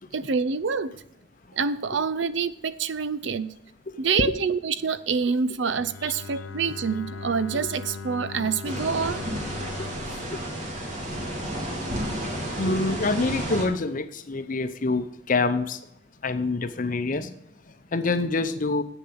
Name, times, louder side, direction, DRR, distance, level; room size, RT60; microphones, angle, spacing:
voice 1, 0.1-1.0 1.5-3.5 4.0-9.2, right 5 dB, 65° right, 0.6 m, -26 dB
Bowed string instrument, 5.7-11.6, left 4 dB, 80° left, 0.6 m, -40 dB
sound 1, 8.6-13.7, right 1 dB, 40° right, 2.5 m, -31 dB
voice 2, 9.6-11.7 12.6-15.8 16.2-18.8, left 3 dB, 45° left, 0.7 m, -28 dB
8.1 x 6.8 x 7.9 m
head